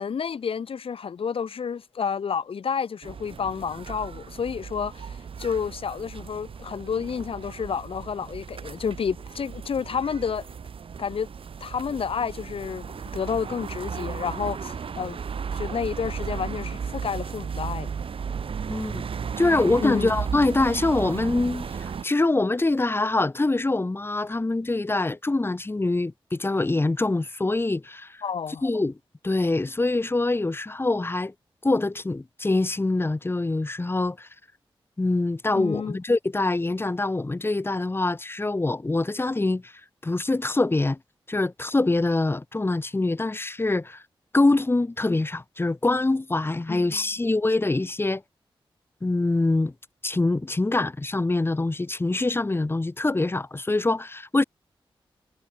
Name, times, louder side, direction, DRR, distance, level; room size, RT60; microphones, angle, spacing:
voice 1, 0.0-10.5 11.0-11.3 11.6-15.2 15.5-17.9 19.8-20.1 28.2-28.6 35.6-36.0 46.7-47.0, left 6 dB, 80° left, 5.6 m, -30 dB
sound 1, 3.0-22.0, right 6 dB, 80° right, 4.1 m, -35 dB
voice 2, 18.7-19.0 19.4-28.2 28.6-28.9 29.2-31.3 31.6-34.3 35.0-39.7 40.0-41.0 41.3-44.0 44.3-48.2 49.0-49.7 50.0-54.4, left 2 dB, 25° left, 3.0 m, -24 dB
wide cardioid pair, 105°, 9 cm